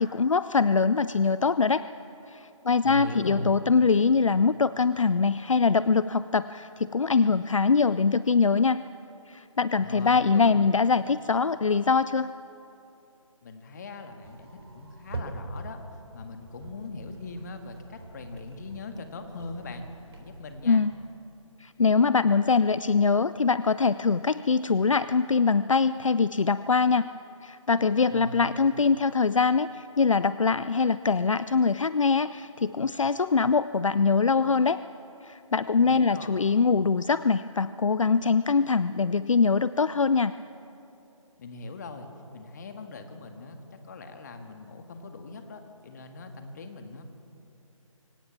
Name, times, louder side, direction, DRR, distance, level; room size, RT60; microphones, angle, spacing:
voice 1, 0.0-1.9 2.3-8.8 9.3-12.3 20.6-21.0 21.6-27.1 27.4-34.8 35.2-40.3, left 5 dB, 65° left, 15 dB, 0.5 m, -23 dB
voice 2, 2.8-3.7 9.8-10.6 13.4-14.5 14.7-15.8 16.1-19.8 20.1-20.8 28.1-28.4 35.8-36.4 41.4-47.0, left 3 dB, 30° left, 6 dB, 1.8 m, -40 dB
sound 1, 14.2-20.6, right 2 dB, 50° right, 4.0 m, -43 dB
24.5 x 17.5 x 7.3 m, 2.7 s
figure-of-eight pair, 150°, 17 cm